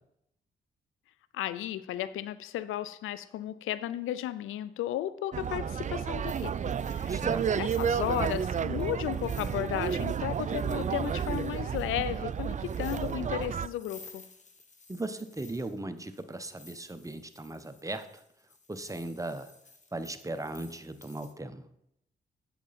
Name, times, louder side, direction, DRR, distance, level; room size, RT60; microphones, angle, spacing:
voice 1, 1.3-6.5 6.8-7.2 7.6-14.2, left 12 dB, 80° left, 0.4 m, -34 dB
sound 1, 5.3-13.7, right 7 dB, 35° right, 0.4 m, -31 dB
sound 2, 6.3-21.3, left 3 dB, 35° left, 1.3 m, -56 dB
voice 2, 7.1-7.5 14.9-18.2 18.7-19.5 19.9-21.7, right 2 dB, 15° right, 0.9 m, -37 dB
8.3 x 6.7 x 4.2 m
supercardioid pair, 45°, 21 cm